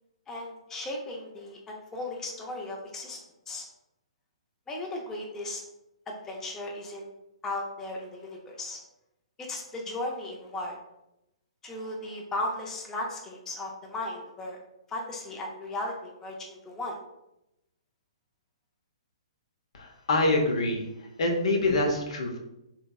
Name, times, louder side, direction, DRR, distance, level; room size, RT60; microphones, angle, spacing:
voice 1, 0.3-3.2 3.5-3.7 4.7-5.6 6.1-7.0 7.4-8.8 9.4-10.8 11.6-14.6 14.9-17.0, left 2 dB, 15° left, 0 dB, 0.5 m, -36 dB
voice 2, 19.7-22.4, left 2 dB, 70° left, 3 dB, 0.7 m, -26 dB
3.4 x 3.0 x 2.2 m, 0.87 s
hypercardioid pair, 135°, 3 cm